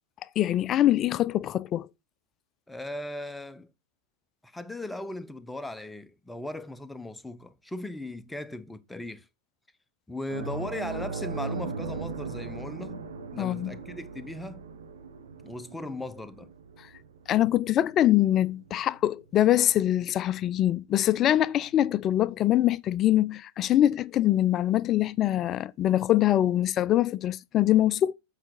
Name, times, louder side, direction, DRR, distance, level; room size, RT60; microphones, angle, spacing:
voice 1, 0.4-1.9 13.4-13.7 17.3-28.1, left 13 dB, 30° left, 0.4 m, -23 dB
voice 2, 2.7-3.7 4.4-9.2 10.1-13.0 13.3-14.6 15.4-16.5, left 1 dB, 5° left, 0.7 m, -38 dB
sound 1, 10.3-19.2 19.6-19.8 21.8-21.9, right 4 dB, 65° right, 1.3 m, -38 dB
7.9 x 4.8 x 4.3 m
figure-of-eight pair, 90°, 0 cm